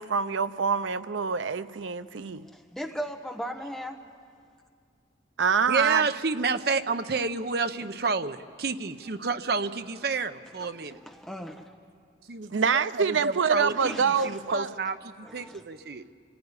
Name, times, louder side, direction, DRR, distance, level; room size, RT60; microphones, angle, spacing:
voice 1, 0.0-2.5 5.4-6.0 12.5-14.7, right 6 dB, 90° right, 0.6 m, -26 dB
voice 2, 2.4-4.0 10.6-10.7 11.0-11.9 13.8-14.4 15.2-15.6, equal, ahead, 1.2 m, -38 dB
voice 3, 5.7-11.0 12.3-16.0, right 4 dB, 55° right, 0.7 m, -30 dB
25.5 x 17.0 x 9.8 m
head